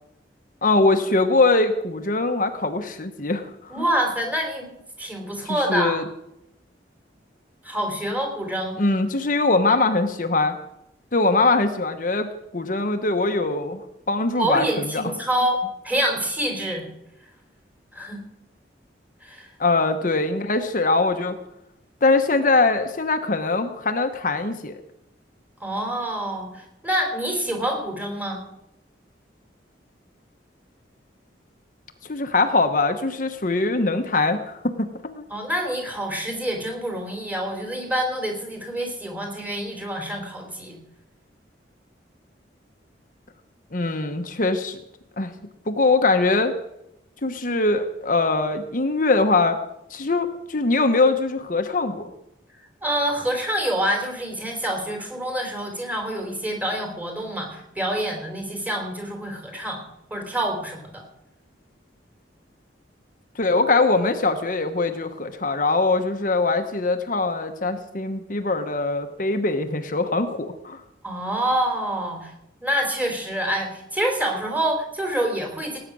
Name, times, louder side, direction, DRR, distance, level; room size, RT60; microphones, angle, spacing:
voice 1, 0.6-3.8 5.5-6.0 8.8-10.6 11.1-13.8 14.1-15.0 19.6-21.4 22.0-24.8 32.1-35.2 43.7-44.8 45.2-45.3 45.7-46.5 47.2-49.6 49.9-52.1 63.4-70.8, left 3 dB, 45° left, 7 dB, 1.1 m, -22 dB
voice 2, 3.7-6.0 7.6-8.8 14.4-15.6 15.8-16.9 17.9-18.2 19.2-19.5 25.6-28.4 35.3-40.8 52.8-59.8 60.1-61.0 71.0-72.3 72.6-75.8, right 1 dB, 10° right, 2 dB, 3.5 m, -26 dB
18.0 x 9.1 x 6.2 m, 0.84 s
head